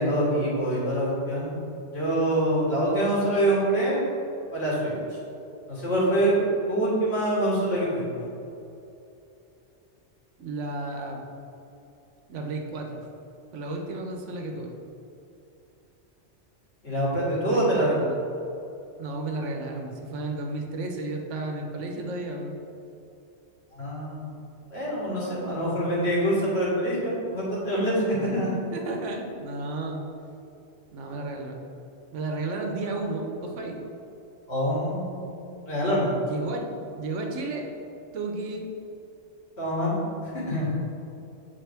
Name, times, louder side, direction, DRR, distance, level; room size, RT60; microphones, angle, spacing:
voice 1, 0.0-1.5 1.9-4.1 4.5-5.0 5.7-6.3 6.7-8.3 16.8-17.9 23.7-24.4 24.7-28.5 34.5-36.1 39.6-40.0 40.5-40.7, right 1 dB, 60° left, -7 dB, 1.9 m, -25 dB
voice 2, 10.4-11.2 12.3-13.0 13.5-14.7 17.5-18.3 19.0-22.5 28.1-28.4 28.7-30.0 30.9-31.6 32.1-33.8 36.2-36.7 37.0-37.7 38.1-38.7, right 2 dB, 85° right, 2 dB, 1.1 m, -33 dB
7.6 x 3.6 x 3.4 m, 2.8 s
omnidirectional pair, 1.2 m